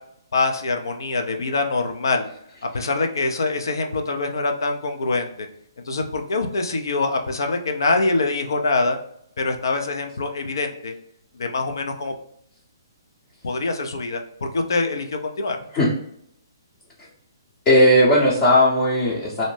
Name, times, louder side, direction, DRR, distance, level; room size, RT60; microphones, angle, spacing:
voice 1, 0.3-2.3 2.7-5.5 5.9-9.0 9.4-10.9 11.4-12.2 13.4-15.6, left 3 dB, 70° left, 5 dB, 0.5 m, -24 dB
voice 2, 17.7-19.4, left 1 dB, 25° left, -6 dB, 0.7 m, -16 dB
2.7 x 2.0 x 3.1 m, 0.71 s
hypercardioid pair, 140°, 2 cm